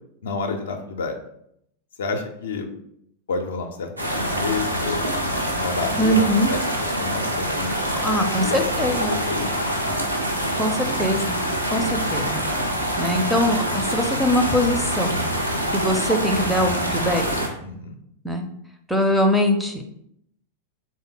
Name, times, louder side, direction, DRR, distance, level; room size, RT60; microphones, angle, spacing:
voice 1, 0.2-1.2 2.0-2.7 3.3-3.9 4.2-5.0 5.5-6.6 6.9-9.5 17.6-18.0, left 4 dB, 65° left, 5 dB, 0.4 m, -30 dB
sound 1, 4.0-17.5, equal, 90° right, 0.5 m, -25 dB
voice 2, 6.0-6.5 7.9-9.1 10.6-11.4 11.7-12.4 13.0-15.2 15.7-17.2 18.2-18.4 18.9-19.9, equal, ahead, 4 dB, 0.4 m, -22 dB
3.2 x 2.1 x 3.7 m, 0.73 s
figure-of-eight pair, 90°, 0 cm